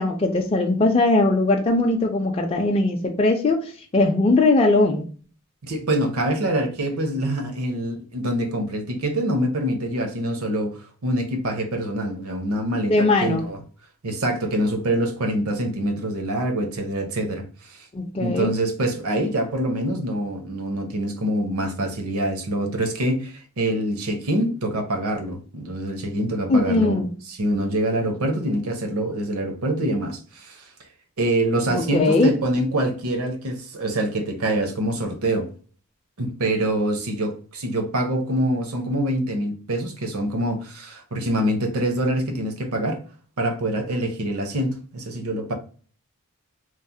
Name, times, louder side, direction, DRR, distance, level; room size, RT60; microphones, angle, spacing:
voice 1, 0.0-3.6 3.9-5.1 12.9-13.4 17.9-18.5 26.5-27.1 31.7-32.3, left 2 dB, 25° left, 0.4 m, -20 dB
voice 2, 5.6-13.6 14.0-17.9 18.2-27.0 27.3-30.6 31.2-35.5 36.2-43.0 43.4-45.5, right 1 dB, 80° right, 0.7 m, -25 dB
3.1 x 2.0 x 2.6 m
head